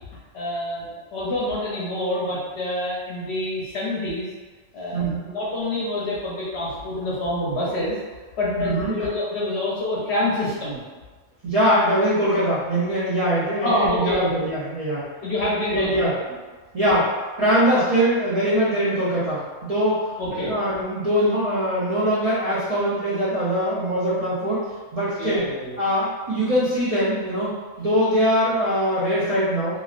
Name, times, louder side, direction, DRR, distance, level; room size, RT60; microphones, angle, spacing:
voice 1, 0.3-4.3 4.7-5.0 5.3-8.0 8.4-10.8 13.6-14.3 15.2-16.4 16.8-16.9 20.2-20.5 25.2-25.7, left 1 dB, 55° left, -6 dB, 0.8 m, -26 dB
voice 2, 4.9-5.4 8.6-8.9 11.4-15.0 15.7-16.1 16.7-17.1 17.4-20.0 20.3-24.6 24.9-25.4 25.8-27.5 27.8-29.8, equal, 45° right, -12 dB, 0.5 m, -22 dB
3.1 x 2.5 x 2.4 m, 1.3 s
omnidirectional pair, 1.5 m